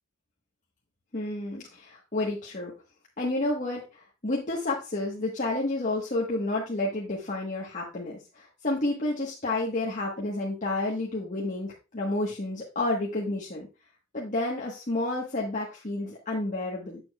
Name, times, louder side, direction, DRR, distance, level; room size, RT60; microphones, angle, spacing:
voice 1, 1.1-2.7 3.2-13.7 14.1-17.0, left 2 dB, 40° left, -4 dB, 1.3 m, -30 dB
8.4 x 6.9 x 2.3 m, 0.29 s
head